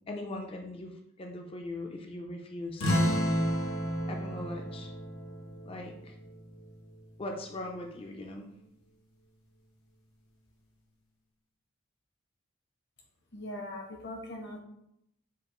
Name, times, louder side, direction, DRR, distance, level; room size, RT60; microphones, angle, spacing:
voice 1, 0.1-3.2 4.1-4.9 5.7-6.1 7.2-8.5, left 2 dB, 25° left, 3 dB, 0.4 m, -40 dB
sound 1, 2.8-7.8, equal, 85° left, 1.0 m, -32 dB
voice 2, 13.3-14.6, left 1 dB, 55° left, 2 dB, 0.9 m, -40 dB
7.2 x 2.5 x 2.9 m, 0.79 s
head